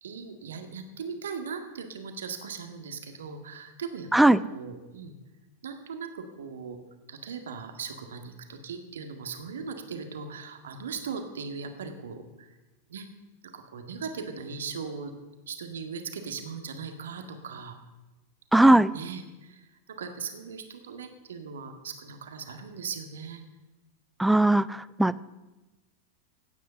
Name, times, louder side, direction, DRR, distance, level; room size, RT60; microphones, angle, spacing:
voice 1, 0.0-5.1 5.6-6.8 7.1-12.5 12.9-13.1 13.4-15.1 15.5-17.8 18.9-23.4, right 5 dB, 65° right, 6 dB, 1.8 m, -39 dB
voice 2, 18.5-18.9 24.2-25.2, right 1 dB, 5° right, 19 dB, 0.4 m, -19 dB
16.5 x 9.3 x 7.0 m, 1.1 s
figure-of-eight pair, 90°, 0 cm